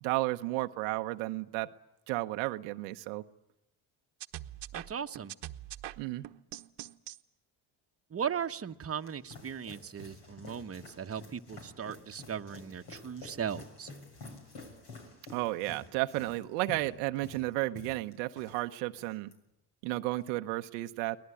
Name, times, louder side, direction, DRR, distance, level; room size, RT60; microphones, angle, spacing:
voice 1, 0.0-1.7 2.1-3.2 6.0-6.2 15.3-19.3 19.8-21.2, right 19 dB, 85° right, 7 dB, 0.9 m, -33 dB
sound 1, 4.2-7.2, right 14 dB, 65° right, 1.2 m, -43 dB
voice 2, 4.7-5.3 8.1-13.9, right 7 dB, 30° right, 7 dB, 1.1 m, -37 dB
sound 2, 8.7-18.6 18.9-19.3, left 3 dB, 65° left, 6.7 m, -50 dB
23.5 x 19.0 x 9.8 m, 0.92 s
supercardioid pair, 65°, 45 cm